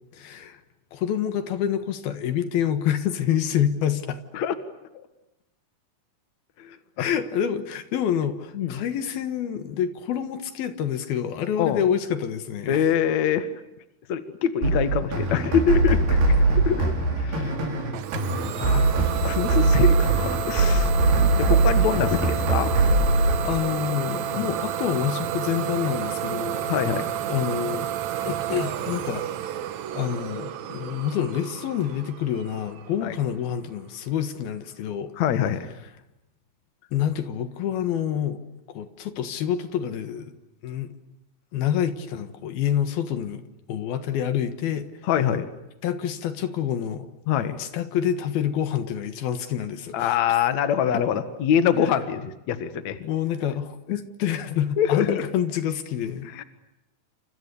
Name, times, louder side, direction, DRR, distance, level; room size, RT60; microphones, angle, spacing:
voice 1, 0.1-0.6 0.9-4.2 7.0-12.8 23.2-26.7 27.3-27.9 28.3-29.3 29.9-35.1 36.9-38.4 38.7-40.4 40.6-40.9 41.5-43.4 43.7-44.9 45.8-47.1 47.5-50.2 53.0-56.3, left 9 dB, 75° left, 3.4 m, -27 dB
voice 2, 6.6-7.1 8.5-8.8 11.6-11.8 12.7-13.5 14.1-16.2 16.5-16.8 17.2-17.5 18.3-22.7 24.3-24.5 26.7-27.1 33.0-33.2 35.2-35.7 45.0-45.5 47.3-47.6 49.9-53.0 54.8-55.2 56.3-56.4, left 9 dB, 55° left, 2.6 m, -25 dB
sound 1, 14.6-23.4, right 3 dB, 85° right, 7.2 m, -21 dB
Idling / Domestic sounds home sounds, 17.9-33.5, right 11 dB, 65° right, 1.9 m, -31 dB
29.5 x 28.0 x 6.9 m
omnidirectional pair, 4.4 m